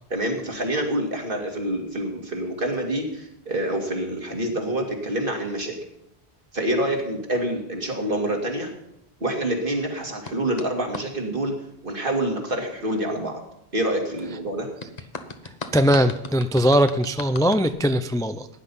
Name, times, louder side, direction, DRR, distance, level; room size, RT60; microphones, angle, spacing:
voice 1, 0.1-5.8 6.5-8.7 9.2-11.5 11.8-13.4 13.7-14.7, right 1 dB, 55° right, 2 dB, 2.6 m, -27 dB
sound 1, 10.3-11.1 14.8-17.7, left 4 dB, 40° left, 1.0 m, -37 dB
voice 2, 15.7-18.5, equal, 5° left, 10 dB, 0.3 m, -20 dB
16.0 x 10.0 x 5.5 m, 0.82 s
omnidirectional pair, 1.1 m